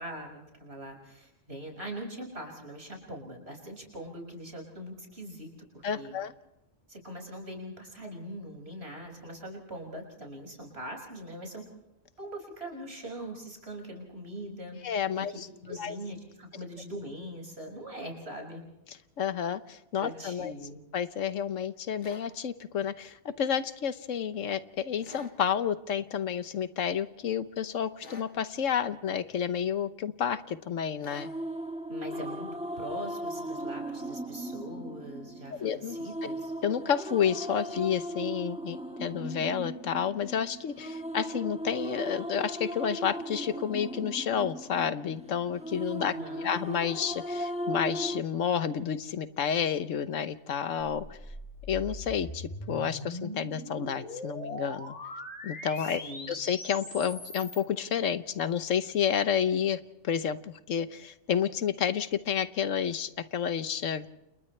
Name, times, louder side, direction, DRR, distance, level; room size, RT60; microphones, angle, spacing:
voice 1, 0.0-6.2 6.9-11.6 12.2-14.8 15.1-18.6 20.0-20.8 31.9-32.5 32.8-36.5 46.0-46.5 55.8-56.4, equal, 55° right, 1 dB, 6.5 m, -42 dB
voice 2, 5.8-6.3 14.8-16.0 19.2-20.5 20.9-31.3 35.6-36.0 36.6-51.2 51.7-55.0 55.4-56.0 56.3-64.1, left 8 dB, 85° left, 12 dB, 1.3 m, -30 dB
sound 1, 22.0-22.3 25.0-25.4 28.0-28.3 31.0-31.3, left 3 dB, 70° left, 2.2 m, -48 dB
sound 2, 31.1-48.2, right 1 dB, 5° right, 1.6 m, -37 dB
sound 3, 50.9-57.6, left 1 dB, 35° left, 4.4 m, -41 dB
29.5 x 29.5 x 3.3 m, 0.93 s
omnidirectional pair, 1.3 m